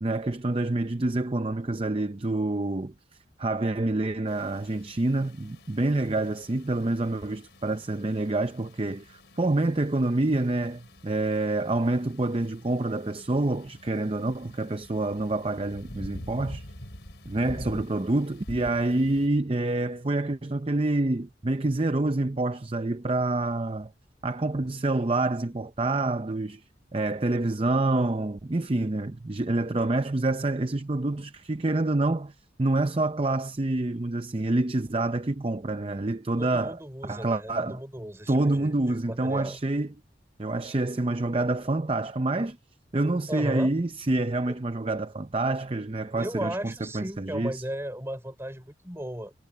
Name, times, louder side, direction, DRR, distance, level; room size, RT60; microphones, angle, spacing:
voice 1, 0.0-2.9 3.4-16.7 17.3-23.9 24.2-26.6 26.9-32.3 32.6-37.8 38.3-39.9 40.4-42.6 42.9-47.6, right 2 dB, 30° right, 0.6 m, -27 dB
sound 1, 4.3-19.3, left 1 dB, 70° left, 4.2 m, -46 dB
voice 2, 36.4-39.6 43.3-43.7 44.5-44.6 46.1-49.3, equal, 15° right, 4.2 m, -36 dB
head